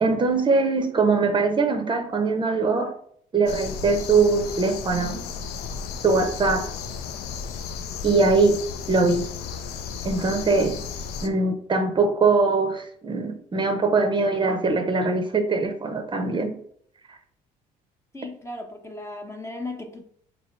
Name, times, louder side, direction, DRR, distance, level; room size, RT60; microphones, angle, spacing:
voice 1, 0.0-2.9 3.3-5.2 6.0-6.7 8.0-8.6 8.9-9.3 10.0-10.8 11.2-16.6, right 3 dB, 25° right, 0.6 m, -22 dB
sound 1, 3.5-11.3, left 6 dB, 70° left, 0.4 m, -34 dB
voice 2, 18.1-20.0, left 2 dB, 15° left, 0.6 m, -36 dB
2.8 x 2.8 x 4.3 m
supercardioid pair, 80°, 18 cm